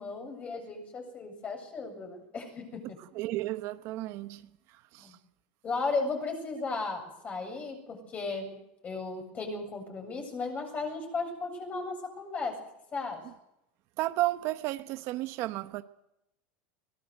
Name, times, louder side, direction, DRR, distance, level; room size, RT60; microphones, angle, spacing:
voice 1, 0.0-3.0 5.0-5.2 5.6-8.6 8.8-12.6 12.9-13.2, left 3 dB, 25° left, 4 dB, 7.7 m, -35 dB
voice 2, 3.2-4.4 4.9-5.1 14.0-15.8, right 17 dB, 50° right, 11 dB, 1.1 m, -32 dB
24.0 x 19.0 x 8.0 m, 0.84 s
supercardioid pair, 135°, 6 cm